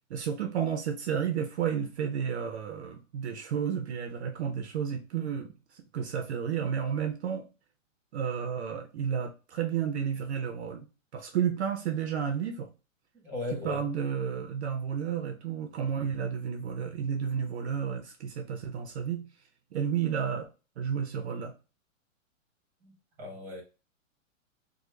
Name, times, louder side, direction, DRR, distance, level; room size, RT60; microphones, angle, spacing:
voice 1, 0.1-7.5 8.1-10.9 11.1-12.7 13.6-19.2 19.7-20.5 20.8-21.5, right 7 dB, 55° right, 0.5 m, -32 dB
voice 2, 13.1-13.8 22.8-23.6, left 2 dB, 5° right, 0.9 m, -38 dB
3.1 x 2.1 x 3.0 m
hypercardioid pair, 160°, 40 cm